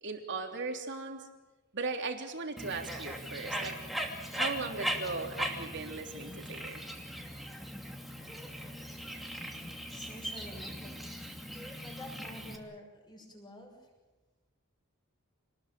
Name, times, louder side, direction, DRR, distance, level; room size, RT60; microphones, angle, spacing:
voice 1, 0.0-1.3 1.7-3.8 4.3-6.8, right 3 dB, 55° right, 3 dB, 3.3 m, -38 dB
Bird, 2.6-12.6, equal, ahead, 2.7 m, -39 dB
voice 2, 9.9-11.1 11.8-13.9, left 1 dB, 20° left, 1 dB, 7.0 m, -48 dB
27.5 x 20.0 x 7.7 m, 1.1 s
head